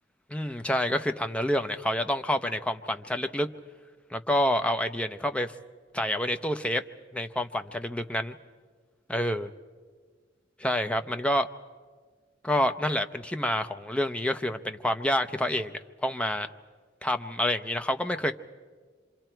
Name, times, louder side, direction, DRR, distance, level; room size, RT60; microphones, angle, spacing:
voice 1, 0.3-3.5 4.1-5.5 5.9-6.8 7.1-8.4 9.1-9.5 10.6-11.5 12.4-16.5 17.0-18.3, left 1 dB, 5° left, 7 dB, 0.7 m, -28 dB
26.5 x 26.5 x 4.5 m, 1.5 s
head